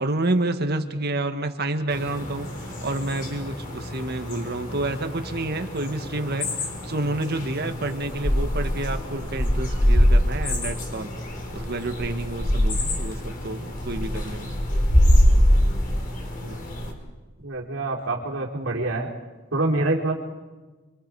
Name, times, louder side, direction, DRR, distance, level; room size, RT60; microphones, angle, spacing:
voice 1, 0.0-11.1 11.5-14.5, right 2 dB, 50° right, 7 dB, 1.7 m, -29 dB
sound 1, 1.9-16.9, equal, 40° left, 4.1 m, -24 dB
voice 2, 17.4-19.1 19.5-20.1, right 2 dB, 75° right, -2 dB, 3.6 m, -26 dB
30.0 x 25.0 x 4.9 m, 1.2 s
head